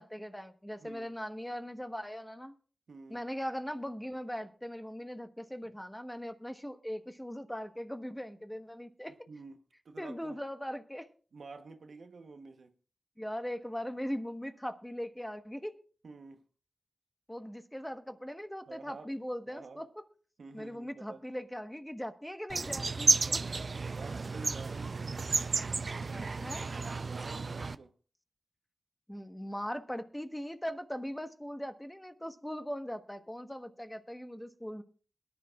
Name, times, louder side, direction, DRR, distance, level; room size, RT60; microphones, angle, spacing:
voice 1, 0.0-2.5 3.1-9.1 10.0-11.1 13.2-15.7 17.3-19.9 20.5-23.4 26.1-26.7 29.1-34.8, equal, 10° left, 1.2 m, -40 dB
voice 2, 0.8-1.1 2.9-3.3 5.6-5.7 9.3-10.4 11.3-12.7 16.0-16.4 18.7-19.1 19.5-19.9 20.4-21.2 23.9-25.1 27.0-27.9, right 4 dB, 85° right, 1.0 m, -49 dB
sound 1, 22.5-27.8, right 4 dB, 60° right, 0.5 m, -32 dB
22.0 x 10.5 x 2.4 m
cardioid pair, 50°, 0 cm